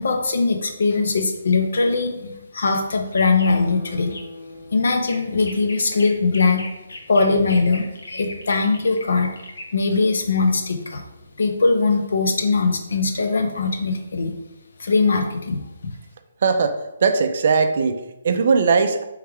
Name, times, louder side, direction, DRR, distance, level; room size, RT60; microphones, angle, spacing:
voice 1, 0.0-4.1 4.7-6.6 7.1-9.3 9.7-11.0 11.4-14.3 14.8-15.6, left 3 dB, 60° left, 4 dB, 0.7 m, -21 dB
sound 1, 2.8-12.4, left 2 dB, 80° left, 1.0 m, -40 dB
Guitar, 3.4-6.7 7.1-7.2, left 3 dB, 5° right, 0.7 m, -41 dB
voice 2, 16.4-19.0, right 5 dB, 40° right, 7 dB, 0.4 m, -19 dB
4.6 x 3.2 x 3.5 m, 0.93 s
hypercardioid pair, 175°, 0 cm